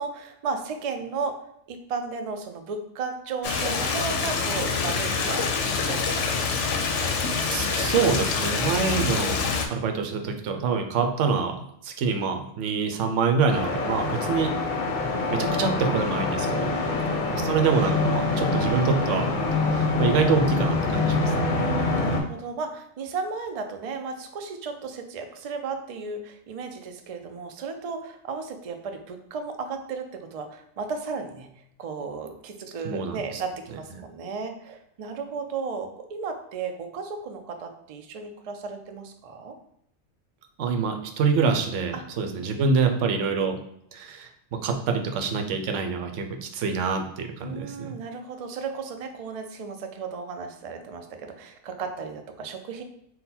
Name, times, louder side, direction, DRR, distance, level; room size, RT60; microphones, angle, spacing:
voice 1, 0.0-1.4 1.7-5.4 5.9-7.1 16.5-17.5 21.5-39.5 41.9-42.0 47.4-52.8, right 4 dB, 70° right, 5 dB, 0.3 m, -34 dB
Stream, 3.4-9.7, left 5 dB, 80° left, 0.9 m, -26 dB
voice 2, 7.5-9.4 9.7-11.6 11.8-14.5 15.3-16.6 17.3-19.3 19.6-21.3 32.8-33.2 40.6-43.6 43.9-44.3 44.6-48.0, right 5 dB, 85° right, 5 dB, 0.9 m, -25 dB
sound 1, 13.5-22.2, left 3 dB, 50° left, 0.7 m, -25 dB
3.8 x 2.2 x 4.2 m, 0.73 s
omnidirectional pair, 1.2 m